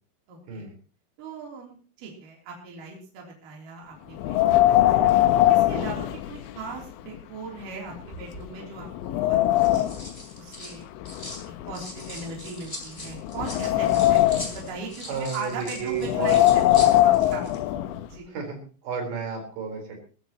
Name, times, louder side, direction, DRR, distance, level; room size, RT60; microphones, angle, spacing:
voice 1, 0.3-0.7 1.2-5.2 5.5-9.8 10.3-10.8 11.7-17.5 18.1-18.3, right 4 dB, 50° right, -2 dB, 4.8 m, -39 dB
Wind, 4.2-6.8 7.1-7.2 7.9-8.0 8.5-10.1 11.0-12.5 13.1-14.7 15.9-18.1, left 14 dB, 85° left, 3.1 m, -21 dB
sound 1, 8.0-8.5 9.3-11.4 11.7-17.6 17.9-18.1, left 1 dB, 10° left, 3.9 m, -41 dB
voice 2, 15.1-16.6 18.3-20.0, right 5 dB, 75° right, 2 dB, 6.5 m, -32 dB
21.0 x 14.5 x 3.0 m, 0.38 s
omnidirectional pair, 5.1 m